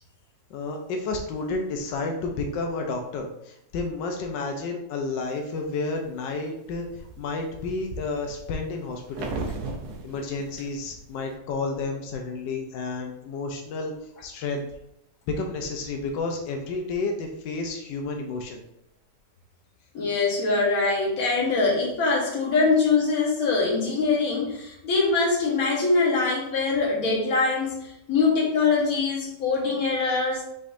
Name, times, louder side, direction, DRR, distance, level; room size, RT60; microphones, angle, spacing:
voice 1, 0.5-9.4 10.0-14.6 15.3-18.6, left 3 dB, 90° left, 3 dB, 1.3 m, -31 dB
sound 1, 5.3-6.0 6.5-11.4, right 3 dB, 65° right, 1.2 m, -37 dB
voice 2, 19.9-30.4, left 4 dB, 55° left, -3 dB, 1.5 m, -23 dB
5.6 x 3.6 x 2.6 m, 0.81 s
omnidirectional pair, 1.9 m